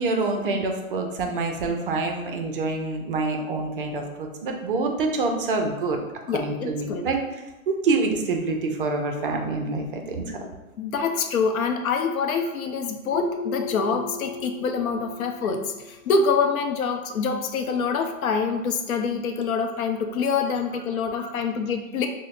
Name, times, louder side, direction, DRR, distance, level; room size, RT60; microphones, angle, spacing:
voice 1, 0.0-6.0 6.3-7.2 7.7-10.4 21.2-21.3, right 3 dB, 40° right, 3 dB, 0.4 m, -26 dB
voice 2, 6.3-7.1 10.4-10.5 10.8-22.1, left 5 dB, 80° left, 5 dB, 0.6 m, -26 dB
Keyboard (musical), 13.1-15.9, left 5 dB, 20° right, 1.2 m, -37 dB
4.9 x 2.1 x 2.4 m, 1.1 s
hypercardioid pair, 140°, 42 cm